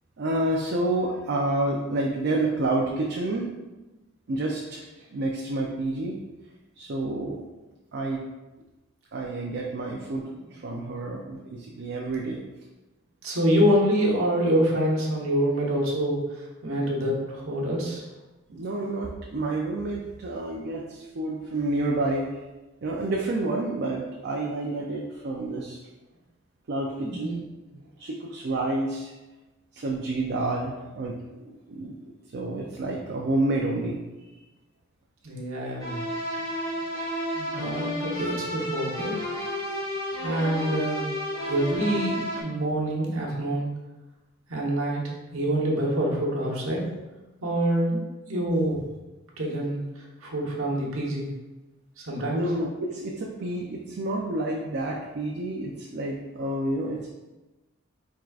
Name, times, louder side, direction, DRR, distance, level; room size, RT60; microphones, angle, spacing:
voice 1, 0.2-3.5 4.3-4.9 5.1-6.2 6.8-7.4 7.9-8.2 9.1-12.4 18.5-22.3 22.8-25.8 26.7-27.5 27.7-29.1 29.7-31.1 31.4-32.0 32.3-34.3 37.9-38.0 52.3-57.1, right 2 dB, 55° right, -1 dB, 0.5 m, -29 dB
voice 2, 13.2-18.0 27.0-27.3 35.2-36.0 37.3-39.1 40.2-41.1 41.4-43.7 44.5-45.0 45.3-46.9 47.4-48.0 48.3-48.8 49.4-49.8 50.2-51.3 52.0-52.4, equal, 85° right, -3 dB, 1.1 m, -26 dB
sound 1, 35.8-42.4, equal, 15° left, 1.1 m, -31 dB
4.6 x 3.6 x 2.4 m, 1.1 s
head